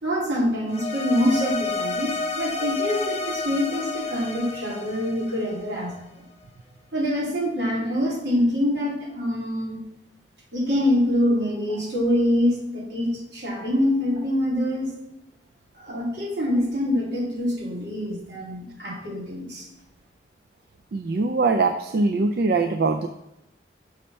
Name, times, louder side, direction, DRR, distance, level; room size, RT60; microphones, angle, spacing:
voice 1, 0.0-5.9 6.9-9.8 10.5-14.9 15.7-19.7, left 1 dB, 80° right, -5 dB, 2.9 m, -25 dB
sound 1, 0.7-6.0, left 3 dB, 35° left, 0.6 m, -30 dB
voice 2, 20.9-23.1, right 3 dB, 60° right, 7 dB, 0.4 m, -22 dB
6.3 x 4.3 x 5.5 m, 0.84 s
head